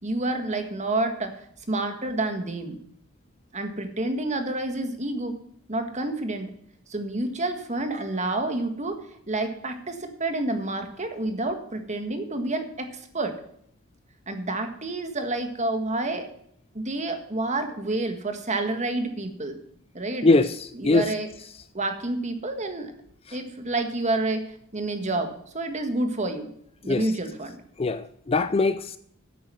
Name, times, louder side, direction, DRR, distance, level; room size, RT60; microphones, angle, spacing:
voice 1, 0.0-1.4 1.7-2.8 3.5-5.4 5.7-6.5 6.9-13.4 14.3-16.3 16.7-19.6 19.9-20.4 20.7-21.3 21.7-22.9 23.3-26.5 26.8-27.6, right 2 dB, 30° right, 1.7 m, -29 dB
voice 2, 20.2-20.6 20.8-21.1 26.9-27.0 27.8-29.0, left 3 dB, 25° left, 0.4 m, -21 dB
9.9 x 8.8 x 6.2 m
head